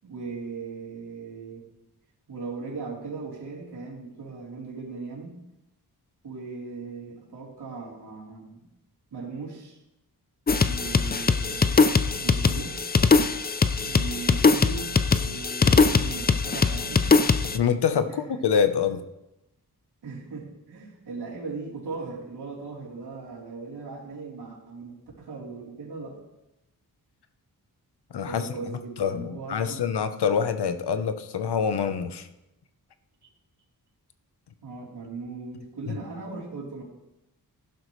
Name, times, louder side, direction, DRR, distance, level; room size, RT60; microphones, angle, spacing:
voice 1, 0.0-1.7 2.3-5.3 6.2-8.7 9.1-9.8 10.6-12.8 13.9-17.2 18.1-18.3 20.0-26.2 28.2-29.9 34.6-36.8, right 4 dB, 85° right, -4 dB, 3.7 m, -38 dB
sound 1, 10.5-17.6, left 4 dB, 25° left, 0.4 m, -21 dB
voice 2, 17.5-19.0 28.1-28.4 29.0-32.3, left 7 dB, 90° left, 10 dB, 0.9 m, -25 dB
15.0 x 12.0 x 3.2 m, 0.93 s
wide cardioid pair, 140°, 39 cm